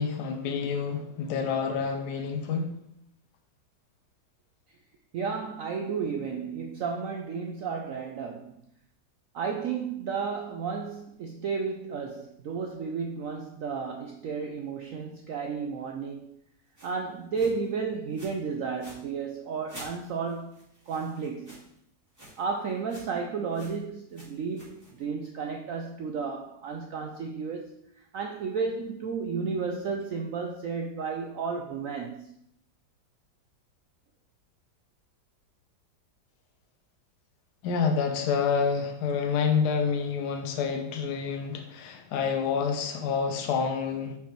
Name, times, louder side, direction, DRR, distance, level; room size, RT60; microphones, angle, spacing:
voice 1, 0.0-2.7 37.6-44.2, left 6 dB, 70° left, 4 dB, 1.3 m, -28 dB
voice 2, 5.1-8.5 9.3-16.3 16.8-20.6 20.9-21.6 22.4-27.7 28.1-32.3, right 5 dB, 75° right, 3 dB, 0.7 m, -33 dB
sound 1, 16.8-16.9 17.3-17.7 18.1-18.4 18.7-19.0 19.7-21.8 22.1-22.4 22.7-23.2 23.5-23.8 24.1-25.0, equal, 10° right, 2.5 m, -48 dB
5.3 x 4.8 x 4.4 m, 0.73 s
omnidirectional pair, 2.0 m